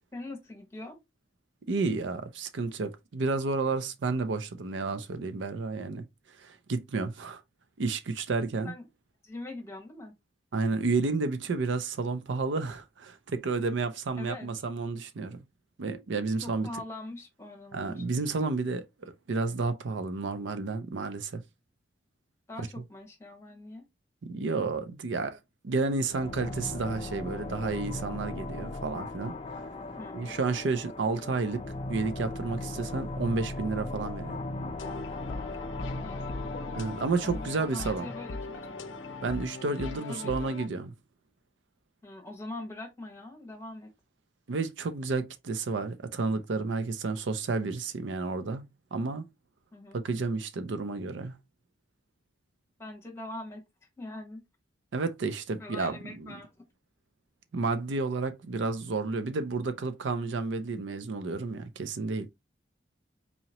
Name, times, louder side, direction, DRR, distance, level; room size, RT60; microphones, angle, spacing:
voice 1, 0.1-1.0 8.6-8.9 9.2-10.1 14.2-14.5 16.4-18.0 22.5-23.8 30.0-30.3 35.8-36.5 37.2-38.4 40.1-40.3 42.0-43.9 49.7-50.0 52.8-53.6 54.0-54.4 55.6-56.5, left 2 dB, 15° left, 1.2 m, -42 dB
voice 2, 1.7-6.0 6.4-7.4 7.8-8.7 10.5-15.4 15.8-16.7 17.7-21.4 24.2-25.4 25.6-29.6 30.1-31.6 31.9-34.4 36.7-38.1 39.2-40.9 44.5-48.7 48.9-49.2 49.9-51.3 54.9-56.3 57.5-62.3, right 3 dB, 75° right, 0.5 m, -31 dB
sound 1, 26.1-39.4, left 2 dB, 30° left, 0.4 m, -38 dB
sound 2, 34.8-40.7, left 4 dB, 80° left, 0.5 m, -40 dB
4.1 x 2.9 x 2.9 m
head